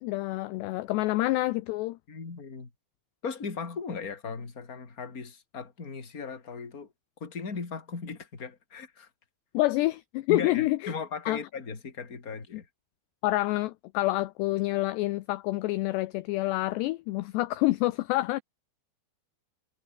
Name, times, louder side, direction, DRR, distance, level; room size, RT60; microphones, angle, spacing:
voice 1, 0.0-2.0 9.5-10.9 11.3-11.4 13.2-18.4, left 18 dB, 80° left, 2.5 m, -27 dB
voice 2, 2.1-2.7 3.2-6.9 7.2-9.1 10.3-12.7, left 5 dB, 20° left, 2.9 m, -37 dB
omnidirectional pair, 5.7 m